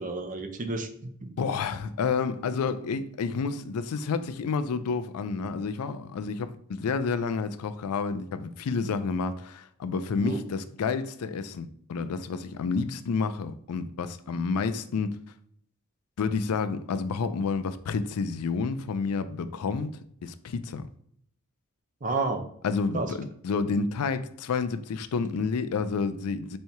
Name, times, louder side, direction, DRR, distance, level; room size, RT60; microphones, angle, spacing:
voice 1, 0.0-1.4 10.2-10.4 22.0-22.4 22.9-23.1, right 3 dB, 35° right, 0.6 m, -31 dB
voice 2, 1.4-15.2 16.2-19.9 20.2-20.8 22.6-26.6, left 5 dB, 85° left, 0.4 m, -29 dB
4.3 x 2.7 x 4.6 m
head